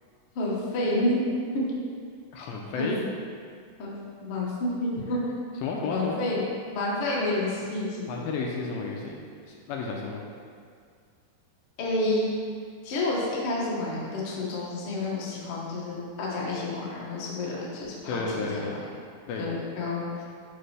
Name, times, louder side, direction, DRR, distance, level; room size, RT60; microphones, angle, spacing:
voice 1, 0.3-1.2 2.8-2.9 3.8-5.2 5.9-6.5 6.7-8.2 11.8-12.3 12.8-18.2 19.4-20.2, left 2 dB, 60° left, -6 dB, 1.4 m, -29 dB
voice 2, 2.3-3.0 5.6-6.2 8.1-9.2 9.5-10.2 18.1-18.8 19.3-19.5, left 4 dB, 80° left, -1 dB, 2.3 m, -32 dB
9.0 x 4.3 x 3.3 m, 2.1 s
omnidirectional pair, 4.3 m